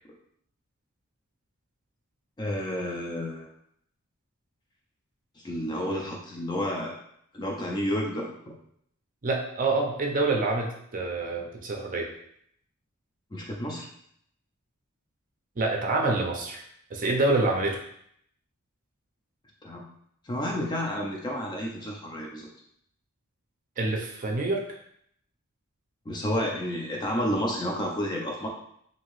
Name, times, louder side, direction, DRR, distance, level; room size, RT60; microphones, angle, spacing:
voice 1, 2.4-3.5 5.4-6.9 7.3-8.6 13.3-13.8 19.6-19.9 20.2-22.5 26.1-28.5, equal, 20° left, -1 dB, 0.4 m, -30 dB
voice 2, 9.2-12.1 15.6-16.6 16.9-17.8 23.8-24.8, right 2 dB, 40° right, 1 dB, 0.5 m, -27 dB
2.8 x 2.6 x 3.0 m, 0.70 s
head